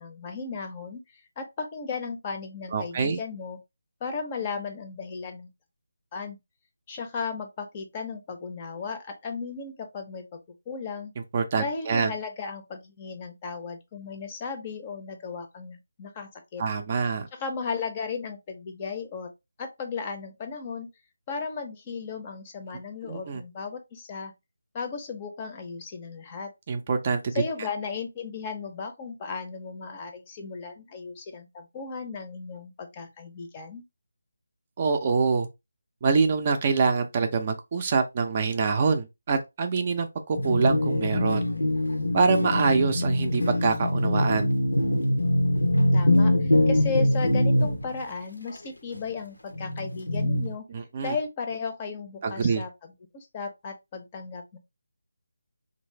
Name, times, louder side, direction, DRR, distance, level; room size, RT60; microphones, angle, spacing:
voice 1, 0.0-3.6 4.0-5.5 6.1-6.4 6.9-10.4 10.7-11.1 11.6-16.6 17.3-19.3 19.6-20.9 21.3-24.3 24.7-26.5 27.3-33.8 45.7-50.6 51.0-52.7 53.1-54.6, left 5 dB, 25° left, 0.6 m, -35 dB
voice 2, 2.7-3.2 11.3-12.1 16.6-17.3 23.1-23.4 26.7-27.4 34.8-35.5 36.0-41.5 42.1-44.5 50.7-51.2 52.2-52.6, right 5 dB, 35° right, 0.5 m, -25 dB
sound 1, 40.3-48.0 49.0-49.1 49.5-50.5, left 1 dB, 85° left, 0.7 m, -23 dB
3.1 x 2.6 x 3.1 m
figure-of-eight pair, 155°, 0 cm